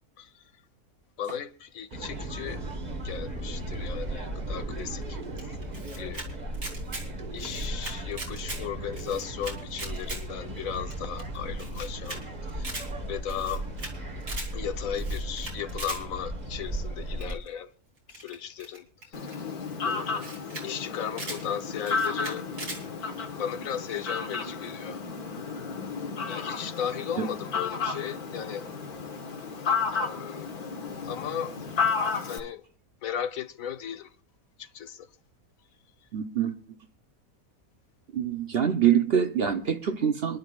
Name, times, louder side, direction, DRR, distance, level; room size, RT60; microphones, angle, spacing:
voice 1, 1.2-2.6 3.0-5.6 5.9-6.3 7.3-12.2 12.5-12.8 13.1-13.6 14.5-17.7 18.1-19.4 19.8-20.4 20.6-22.5 23.4-25.0 26.3-28.7 29.8-30.6 31.0-31.5 32.2-32.6 33.0-34.1 34.6-35.1, left 9 dB, 70° left, 1.2 m, -36 dB
sound 1, 1.9-17.4, right 1 dB, 30° right, 1.4 m, -36 dB
Camera, 5.4-6.3 6.5-7.1 7.4-8.6 8.9-10.2 10.6-10.7 10.9-11.0 11.2-11.3 11.6-12.2 12.5-12.9 13.3-13.9 14.2-14.5 14.9-16.0 17.2-17.5 18.1-19.4 19.9-20.0 20.2-20.7 20.9-21.4 21.8-22.8, right 2 dB, 75° right, 3.6 m, -39 dB
Fowl, 19.1-32.4, left 5 dB, 85° left, 2.1 m, -32 dB
voice 2, 36.1-36.6 38.1-40.4, right 8 dB, 50° right, 0.8 m, -25 dB
26.5 x 11.5 x 2.4 m
omnidirectional pair, 1.5 m